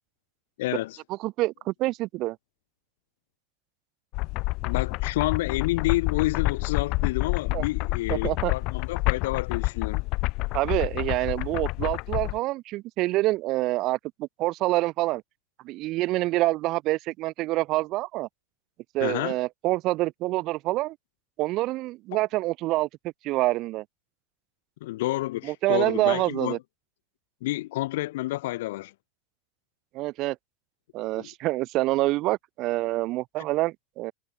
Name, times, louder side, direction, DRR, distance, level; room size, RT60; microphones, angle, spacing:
voice 1, 0.6-1.0 4.6-10.0 19.0-19.4 24.8-26.6 27.4-28.9 31.2-31.3, left 17 dB, 75° left, 6.6 m, -29 dB
voice 2, 1.2-2.4 7.5-7.6 8.1-8.5 10.5-15.2 15.6-18.3 18.9-21.0 21.4-23.8 25.4-26.6 29.9-30.4 30.9-34.1, right 18 dB, 45° right, 2.9 m, -26 dB
sound 1, 4.1-12.4, left 24 dB, 50° left, 3.3 m, -28 dB
supercardioid pair, 135°, 0 cm